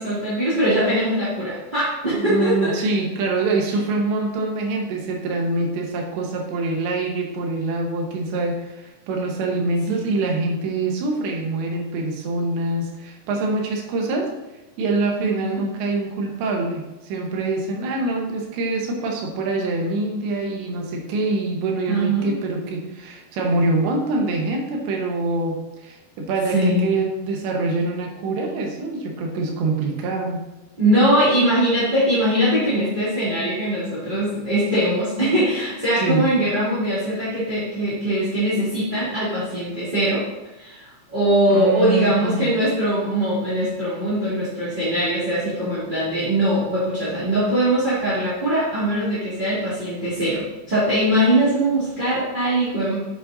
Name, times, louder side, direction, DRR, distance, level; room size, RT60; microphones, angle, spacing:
voice 1, 0.0-2.7 9.9-10.0 15.2-15.6 21.9-22.3 26.5-27.0 30.8-40.2 40.6-53.0, right 1 dB, 20° right, -10 dB, 1.4 m, -21 dB
voice 2, 2.2-14.3 14.8-30.4 36.0-36.3 41.5-42.5 52.8-53.0, right 2 dB, 75° right, 0 dB, 3.4 m, -25 dB
8.5 x 8.2 x 2.7 m, 1.0 s
omnidirectional pair, 5.3 m